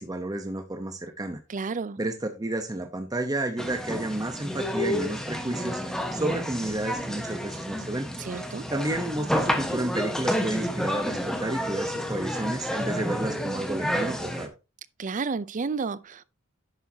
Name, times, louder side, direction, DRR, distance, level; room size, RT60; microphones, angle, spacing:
voice 1, 0.0-1.4 2.0-8.1 8.7-14.5, right 1 dB, 20° right, 0.8 m, -31 dB
voice 2, 1.5-2.0 8.2-8.6 15.0-16.2, right 4 dB, 35° right, 0.5 m, -31 dB
sound 1, 3.6-14.5, equal, 5° left, 1.2 m, -30 dB
11.0 x 7.6 x 2.8 m
head